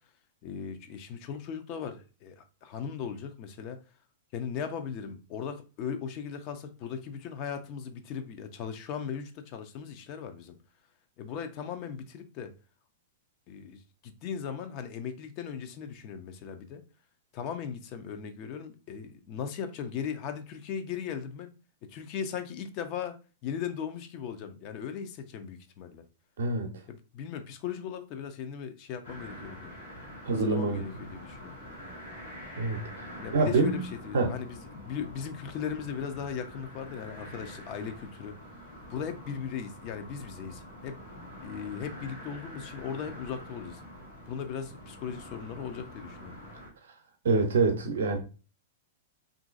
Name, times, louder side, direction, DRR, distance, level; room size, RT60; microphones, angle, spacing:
voice 1, 0.4-3.8 4.3-10.6 11.2-12.5 13.5-16.8 17.3-21.5 21.9-23.2 23.4-26.0 26.9-29.7 30.3-31.5 33.2-38.3 38.9-41.0 41.4-43.8 44.3-46.3, left 7 dB, 45° left, 0.5 m, -38 dB
voice 2, 26.4-26.7 30.2-30.9 32.6-33.9 34.1-34.3 47.2-48.2, right 3 dB, 70° right, 0.5 m, -26 dB
sound 1, 29.0-46.7, equal, 90° left, 1.0 m, -46 dB
3.0 x 2.5 x 2.4 m
hypercardioid pair, 110°, 0 cm